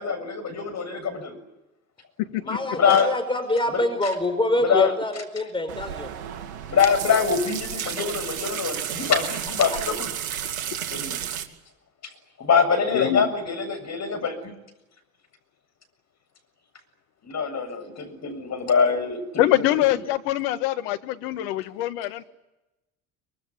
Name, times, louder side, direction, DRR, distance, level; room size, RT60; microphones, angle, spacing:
voice 1, 0.0-1.4 2.5-3.1 3.7-3.8 4.6-4.9 6.7-10.1 10.9-11.2 12.4-14.5 17.2-19.2 19.6-19.7, left 6 dB, 40° left, 7.3 m, -24 dB
voice 2, 2.5-6.1, left 1 dB, 10° left, 5.2 m, -25 dB
sound 1, 5.7-11.4, right 9 dB, 85° right, 2.6 m, -32 dB
voice 3, 12.9-13.3 19.4-22.2, left 14 dB, 70° left, 1.7 m, -24 dB
25.0 x 23.0 x 9.8 m
hypercardioid pair, 75°, 42 cm